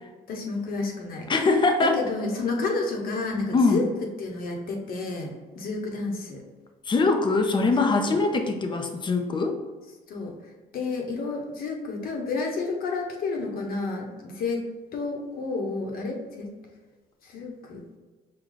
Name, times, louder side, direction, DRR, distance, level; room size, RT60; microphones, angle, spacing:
voice 1, 0.3-1.3 1.8-3.9 4.2-6.4 7.8-8.2 10.1-10.3 10.7-16.5 17.2-17.8, left 3 dB, 60° left, 1 dB, 0.9 m, -31 dB
voice 2, 1.3-2.0 3.5-3.8 6.9-9.6, left 3 dB, 30° left, 4 dB, 0.6 m, -22 dB
4.8 x 2.3 x 3.8 m, 1.3 s
cardioid pair, 110°, 17 cm